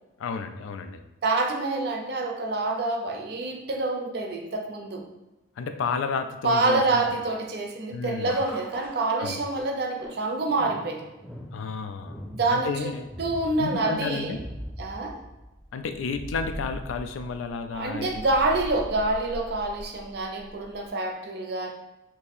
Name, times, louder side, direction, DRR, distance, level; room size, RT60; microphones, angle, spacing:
voice 1, 0.2-1.0 5.6-7.0 7.9-8.4 9.2-9.4 11.5-12.2 12.5-13.1 13.6-14.4 15.7-18.2, left 5 dB, 90° left, 8 dB, 0.3 m, -32 dB
voice 2, 1.2-5.0 6.4-11.1 12.2-12.9 13.2-14.4 14.8-15.2 17.7-21.7, right 2 dB, 55° right, 2 dB, 0.5 m, -27 dB
sound 1, 8.3-20.9, equal, ahead, 0.8 m, -41 dB
2.7 x 2.6 x 4.0 m, 1.0 s
head